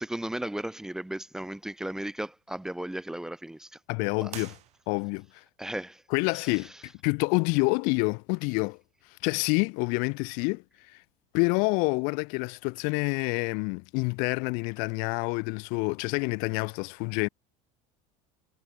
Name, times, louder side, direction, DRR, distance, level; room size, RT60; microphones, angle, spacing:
voice 1, 0.0-3.8 4.2-4.3 5.6-6.0 6.3-6.8, right 1 dB, 5° right, 1.0 m, -36 dB
voice 2, 3.9-4.5 4.9-5.3 6.1-8.8 9.2-10.6 11.3-17.3, left 34 dB, 60° left, 0.4 m, -27 dB
sound 1, 4.3-5.3, right 15 dB, 45° right, 1.6 m, -45 dB
cardioid pair, 155°, 16 cm